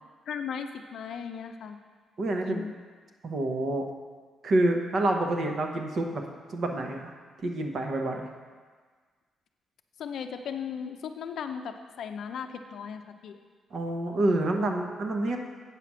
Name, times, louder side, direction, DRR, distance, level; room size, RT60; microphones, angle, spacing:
voice 1, 0.3-1.8 2.4-2.7 10.0-13.4, left 7 dB, 55° left, 6 dB, 0.5 m, -37 dB
voice 2, 2.2-2.6 3.2-3.9 4.4-6.2 6.5-7.1 7.4-8.3 13.7-15.4, right 1 dB, 40° right, 3 dB, 0.9 m, -27 dB
8.2 x 5.9 x 6.1 m, 1.5 s
cardioid pair, 170°, 0 cm